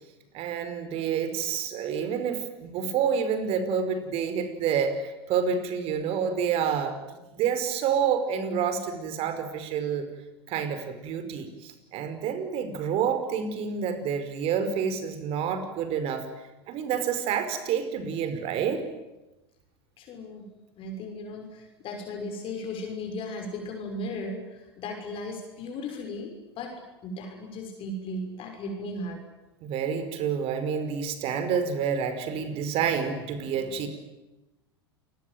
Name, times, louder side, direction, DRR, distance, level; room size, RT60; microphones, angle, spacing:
voice 1, 0.3-10.1 10.5-16.3 16.7-18.8 29.6-33.9, right 7 dB, 45° right, 10 dB, 5.1 m, -28 dB
voice 2, 20.0-20.5 20.8-29.2, left 1 dB, 40° left, 3 dB, 6.0 m, -36 dB
28.5 x 21.0 x 9.4 m, 1.0 s
hypercardioid pair, 90°, 14 cm